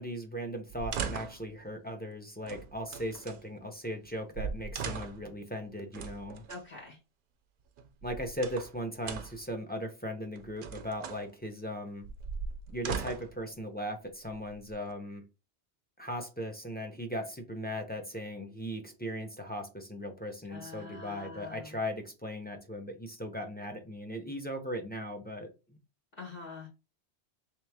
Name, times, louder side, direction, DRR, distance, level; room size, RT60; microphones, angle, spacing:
voice 1, 0.0-6.4 8.0-12.0 12.7-15.2 16.0-25.8, equal, 10° left, 0.5 m, -38 dB
sound 1, 0.7-1.5 2.4-3.4 4.1-4.2 4.3-5.3 5.9-6.6 7.8-8.7 9.0-9.5 10.4-11.2 12.0-13.4 14.2-14.9, right 6 dB, 60° right, 0.6 m, -39 dB
voice 2, 6.5-7.0 20.5-21.7 26.2-26.7, left 3 dB, 55° left, 1.5 m, -45 dB
3.4 x 3.0 x 3.4 m
omnidirectional pair, 1.2 m